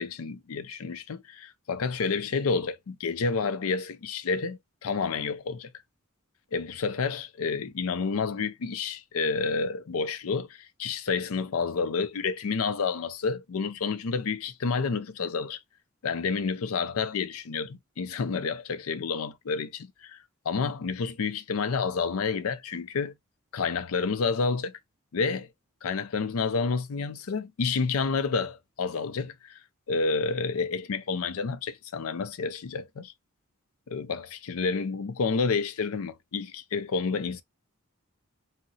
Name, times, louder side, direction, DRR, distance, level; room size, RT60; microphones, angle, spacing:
voice 1, 0.0-5.7 6.5-15.6 16.0-20.2 20.5-23.1 23.5-24.8 25.1-25.5 25.8-29.6 29.9-33.1 33.9-37.4, left 5 dB, 75° left, 0.4 m, -29 dB
2.8 x 2.1 x 2.5 m
head